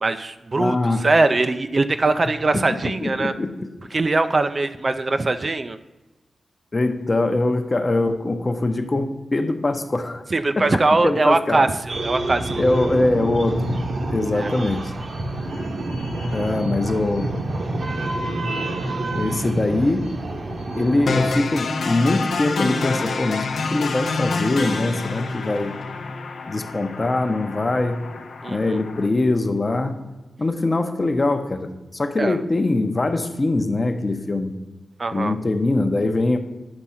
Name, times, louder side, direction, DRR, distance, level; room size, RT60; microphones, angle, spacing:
voice 1, 0.0-3.3 3.9-5.8 10.3-12.6 14.3-14.5 28.4-28.8 32.2-32.4 35.0-35.3, right 3 dB, 35° right, 10 dB, 0.3 m, -21 dB
voice 2, 0.6-1.1 3.0-3.7 6.7-10.2 10.6-11.7 12.6-13.7 14.1-14.9 16.3-17.4 18.6-18.8 19.1-20.1 20.7-25.8 26.5-28.1 28.5-30.0 30.4-34.5 35.1-36.4, left 2 dB, 30° left, 7 dB, 0.7 m, -22 dB
sound 1, 11.9-21.4, right 1 dB, 60° right, 0.9 m, -27 dB
sound 2, 21.1-29.1, left 3 dB, 90° left, 0.7 m, -28 dB
9.9 x 3.6 x 5.6 m, 1.1 s
wide cardioid pair, 120°, 0 cm